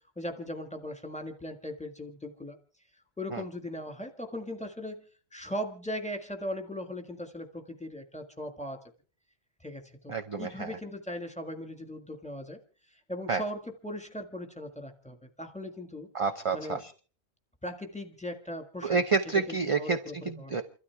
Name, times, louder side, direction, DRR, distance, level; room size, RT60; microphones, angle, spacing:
voice 1, 0.2-2.6 3.2-5.0 5.3-8.8 9.6-12.6 13.1-16.1 16.5-16.8 17.6-19.0 19.5-20.6, left 1 dB, 5° left, 5 dB, 1.7 m, -38 dB
voice 2, 10.1-10.8 13.3-13.4 16.1-16.9 18.8-20.6, right 4 dB, 35° right, 7 dB, 0.7 m, -29 dB
29.0 x 13.0 x 3.5 m, 0.40 s
omnidirectional pair, 1.2 m